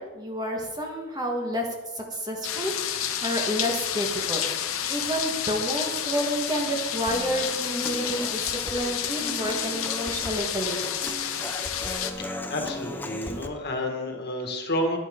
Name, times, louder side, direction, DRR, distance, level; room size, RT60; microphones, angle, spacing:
voice 1, 0.0-1.7 1.9-4.5 4.9-11.1, equal, 20° right, 1 dB, 1.5 m, -30 dB
sound 1, 2.4-12.1, left 9 dB, 65° left, 0.9 m, -30 dB
Human voice / Acoustic guitar, 7.1-13.5, left 1 dB, 10° left, 0.6 m, -37 dB
voice 2, 12.2-15.0, left 1 dB, 50° left, 2 dB, 1.8 m, -30 dB
11.0 x 11.0 x 3.7 m, 1.2 s
head